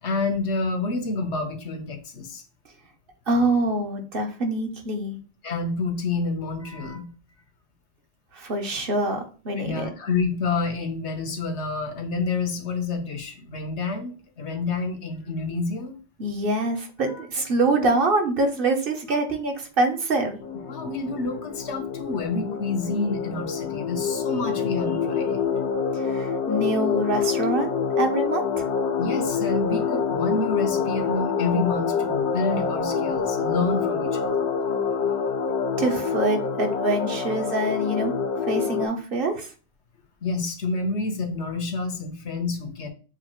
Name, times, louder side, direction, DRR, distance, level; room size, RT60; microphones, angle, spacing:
voice 1, 0.0-2.4 5.4-7.1 9.6-15.9 17.1-17.2 20.7-25.4 29.0-34.3 40.2-42.9, left 3 dB, 90° left, 5 dB, 1.2 m, -28 dB
voice 2, 3.3-5.2 8.3-9.9 16.2-20.4 25.9-28.7 35.8-38.1 38.5-39.5, right 2 dB, 60° right, 3 dB, 1.0 m, -25 dB
sound 1, 20.4-38.9, left 6 dB, 75° left, 0.9 m, -26 dB
7.2 x 2.4 x 3.0 m, 0.37 s
omnidirectional pair, 1.1 m